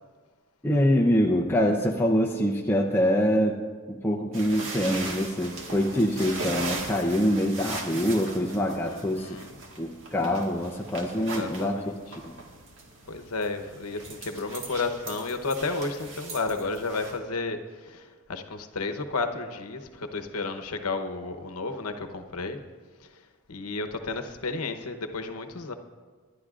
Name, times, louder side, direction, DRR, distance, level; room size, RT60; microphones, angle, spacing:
voice 1, 0.6-3.6 3.9-9.4 9.8-11.9 12.2-12.3, equal, 10° left, -2 dB, 0.6 m, -25 dB
sound 1, 4.3-17.2, right 3 dB, 60° right, 1.7 m, -39 dB
voice 2, 8.9-9.6 11.1-12.0 13.1-22.6 23.5-25.7, left 3 dB, 70° left, 7 dB, 1.0 m, -32 dB
25.5 x 11.5 x 2.5 m, 1.5 s
head